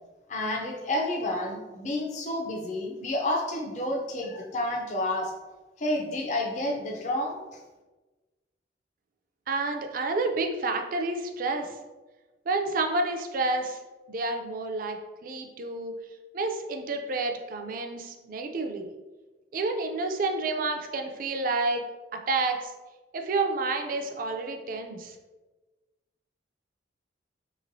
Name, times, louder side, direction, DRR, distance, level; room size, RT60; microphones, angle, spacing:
voice 1, 0.3-5.3 5.8-7.4, left 1 dB, 40° left, 0 dB, 0.5 m, -30 dB
voice 2, 9.5-11.7 12.5-13.8 14.1-15.9 16.3-18.9 19.5-21.8 22.1-22.7 23.1-25.2, right 3 dB, 50° right, 5 dB, 0.4 m, -29 dB
3.5 x 3.0 x 2.6 m, 1.2 s
head